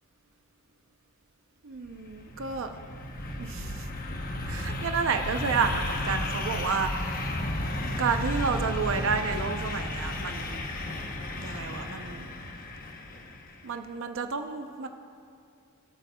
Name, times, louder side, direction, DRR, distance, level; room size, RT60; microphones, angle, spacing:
voice 1, 1.6-2.8 3.4-3.9 4.4-7.3 7.8-10.6 11.4-12.3 13.6-14.9, right 5 dB, 65° right, 6 dB, 0.6 m, -31 dB
sound 1, 1.9-13.6, left 1 dB, 45° left, 0.9 m, -33 dB
21.0 x 9.2 x 2.3 m, 2.6 s
head